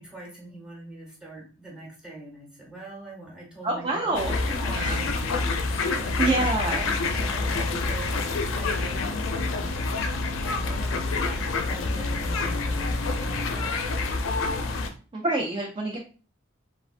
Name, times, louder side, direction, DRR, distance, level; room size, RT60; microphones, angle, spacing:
voice 1, 0.0-9.1 9.4-9.8 10.5-13.8, right 2 dB, 5° right, -3 dB, 0.9 m, -43 dB
voice 2, 3.6-4.3 4.7-5.0 6.2-6.8 15.1-16.0, right 2 dB, 25° right, -2 dB, 0.3 m, -26 dB
sound 1, 4.1-14.9, left 3 dB, 90° left, 0.4 m, -27 dB
3.3 x 2.1 x 2.4 m, 0.38 s
head